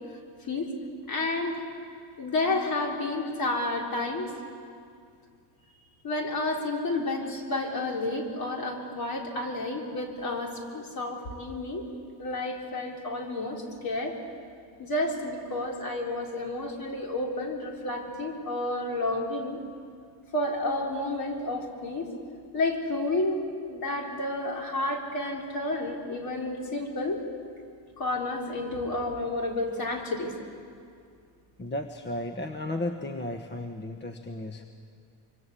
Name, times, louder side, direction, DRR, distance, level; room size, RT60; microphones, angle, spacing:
voice 1, 1.1-1.6 2.2-4.3 6.0-11.8 12.2-14.1 14.8-19.6 20.3-22.1 22.5-27.2 28.0-30.3, left 2 dB, 50° left, 0 dB, 4.1 m, -30 dB
voice 2, 31.6-34.6, left 1 dB, 25° left, 5 dB, 1.1 m, -34 dB
25.0 x 24.5 x 8.4 m, 2.3 s
cardioid pair, 145°, 45 cm